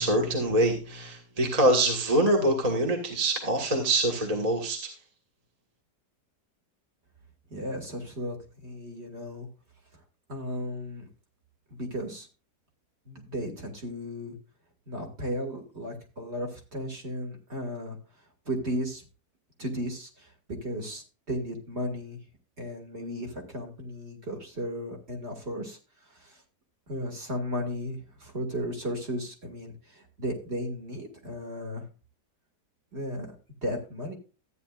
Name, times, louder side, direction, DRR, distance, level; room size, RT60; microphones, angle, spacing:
voice 1, 0.0-4.9, right 1 dB, 25° right, 1 dB, 1.5 m, -25 dB
voice 2, 7.5-9.5 10.3-11.1 11.7-12.3 13.1-14.3 14.9-18.0 18.5-19.0 19.6-22.2 22.6-25.8 26.1-26.4 26.9-31.8 32.9-33.3 33.6-34.1, equal, 40° right, 2 dB, 2.3 m, -35 dB
14.0 x 9.3 x 2.4 m, 0.32 s
omnidirectional pair, 1.8 m